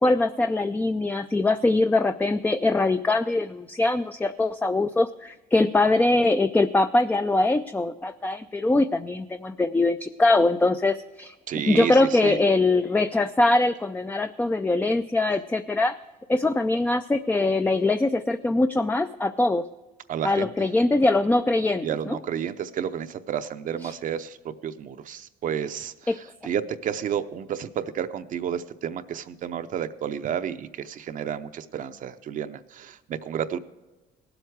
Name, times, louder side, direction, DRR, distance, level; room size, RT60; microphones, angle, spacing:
voice 1, 0.0-11.3 11.7-16.0 16.3-19.6 20.2-22.2 23.8-23.9 26.1-26.2, left 2 dB, 10° left, 9 dB, 0.4 m, -22 dB
voice 2, 11.5-12.4 20.1-20.5 21.8-33.6, right 8 dB, 50° right, 9 dB, 0.6 m, -31 dB
18.0 x 8.0 x 4.7 m, 1.1 s
cardioid pair, 110°, 17 cm